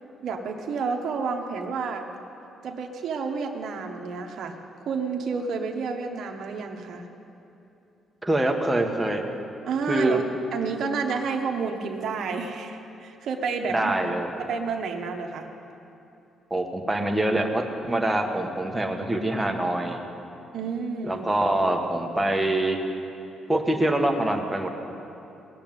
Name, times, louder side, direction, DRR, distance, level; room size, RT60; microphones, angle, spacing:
voice 1, 0.2-2.1 2.6-4.6 4.8-7.1 9.6-10.2 10.5-13.9 14.4-15.5 17.9-18.1 20.5-21.3, right 5 dB, 65° right, 2 dB, 1.3 m, -30 dB
voice 2, 8.2-9.2 9.9-10.2 13.7-14.3 16.5-20.0 21.1-22.8 23.5-24.7, right 1 dB, 10° right, 2 dB, 1.7 m, -24 dB
19.5 x 6.9 x 9.3 m, 2.9 s
cardioid pair, 90°, 0 cm